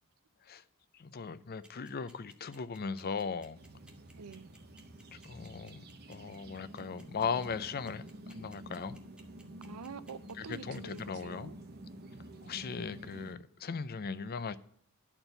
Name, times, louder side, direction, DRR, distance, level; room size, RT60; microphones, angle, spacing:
voice 1, 0.9-3.6 5.2-9.0 10.4-11.5 12.4-14.6, left 5 dB, 45° left, 0.5 m, -38 dB
sound 1, 1.6-11.2, right 1 dB, 5° right, 1.1 m, -59 dB
sound 2, 3.5-13.4, right 1 dB, 45° right, 0.9 m, -50 dB
voice 2, 4.2-4.5 9.6-11.6, right 5 dB, 85° right, 0.5 m, -46 dB
11.0 x 4.4 x 6.6 m
head